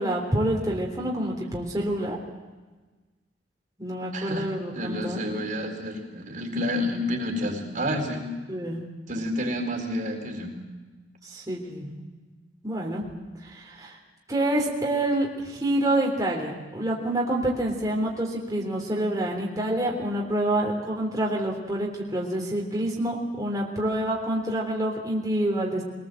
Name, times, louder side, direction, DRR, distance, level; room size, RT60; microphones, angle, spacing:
voice 1, 0.0-2.2 3.8-5.2 8.5-8.8 11.3-12.0 12.6-13.0 13.4-14.0 14.3-25.8, right 1 dB, 20° right, -2 dB, 3.5 m, -27 dB
voice 2, 4.1-4.5 4.7-8.2 9.1-10.5, left 1 dB, 50° right, 2 dB, 4.1 m, -29 dB
24.5 x 19.5 x 7.8 m, 1.3 s
head